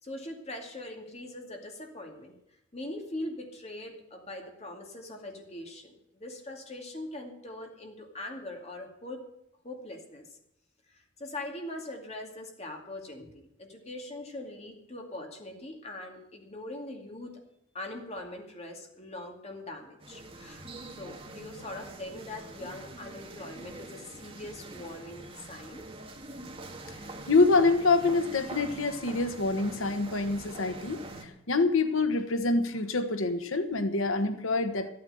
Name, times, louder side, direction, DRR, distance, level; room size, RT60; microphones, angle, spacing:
voice 1, 0.0-2.4 2.7-9.2 9.6-10.3 10.9-17.3 17.7-25.9, left 1 dB, 30° left, 2 dB, 2.4 m, -42 dB
sound 1, 20.0-31.3, right 2 dB, 30° right, 1.8 m, -44 dB
voice 2, 27.3-34.9, left 3 dB, 85° left, 9 dB, 1.3 m, -26 dB
14.0 x 9.2 x 7.8 m, 0.80 s
head